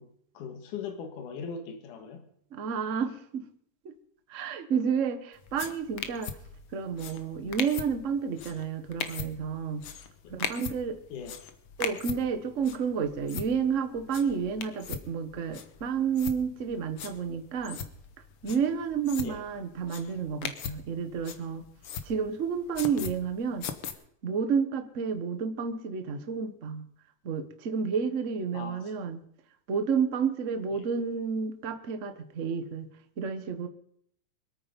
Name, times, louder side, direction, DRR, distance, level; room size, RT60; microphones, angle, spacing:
voice 1, 0.0-2.3 10.2-10.4 11.1-11.4 19.2-19.4 28.5-28.9 30.7-30.9, left 6 dB, 80° left, 6 dB, 3.0 m, -40 dB
voice 2, 2.5-3.5 4.3-6.3 6.7-9.8 10.3-11.0 11.8-17.8 18.4-21.6 22.0-23.7 24.2-26.8 27.2-29.2 29.7-32.9 33.2-33.7, right 6 dB, 80° right, 8 dB, 0.6 m, -30 dB
sound 1, 5.4-23.9, left 7 dB, 60° left, 1.7 m, -40 dB
25.5 x 9.0 x 5.3 m, 0.66 s
omnidirectional pair, 3.6 m